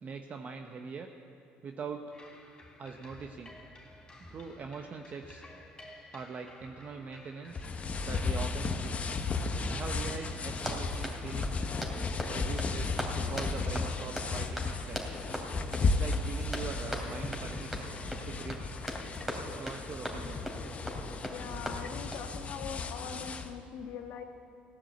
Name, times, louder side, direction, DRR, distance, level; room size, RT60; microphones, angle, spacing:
voice 1, 0.0-1.1 1.6-2.1 2.8-3.5 4.2-5.4 6.1-7.7 8.0-8.9 9.7-11.7 12.3-15.0 15.8-18.0 18.2-18.8 19.5-20.4, right 5 dB, 40° right, 4 dB, 0.9 m, -42 dB
sound 1, 2.1-19.2, left 2 dB, 20° left, 3.2 m, -52 dB
sound 2, 7.5-23.5, left 3 dB, 35° left, 1.0 m, -34 dB
Run, 10.5-22.3, equal, 5° right, 2.8 m, -40 dB
voice 2, 21.3-24.2, left 7 dB, 65° left, 5 dB, 1.4 m, -42 dB
16.5 x 9.9 x 7.9 m, 2.8 s
supercardioid pair, 90°, 4 cm